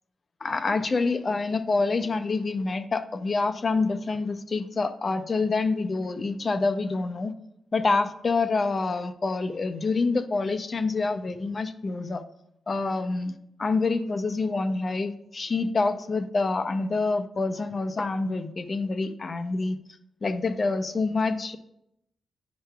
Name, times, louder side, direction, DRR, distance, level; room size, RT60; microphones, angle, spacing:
voice 1, 0.4-7.3 7.7-12.2 12.7-13.3 13.6-19.8 20.2-21.6, left 3 dB, 30° left, 8 dB, 0.4 m, -27 dB
9.4 x 5.6 x 2.3 m, 0.79 s
wide cardioid pair, 170°, 0 cm